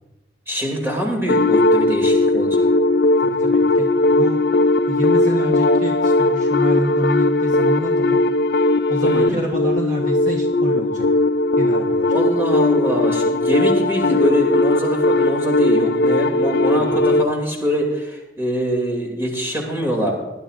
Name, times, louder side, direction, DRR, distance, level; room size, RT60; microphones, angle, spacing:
voice 1, 0.5-2.7 9.1-9.4 12.1-20.1, equal, 15° right, 0 dB, 2.5 m, -23 dB
sound 1, 1.3-17.3, left 2 dB, 55° left, 0.4 m, -18 dB
voice 2, 3.2-4.4 4.9-8.2 8.9-11.1 11.6-12.1 16.8-17.3, equal, 45° right, -1 dB, 1.1 m, -27 dB
20.0 x 11.5 x 2.5 m, 1.0 s
head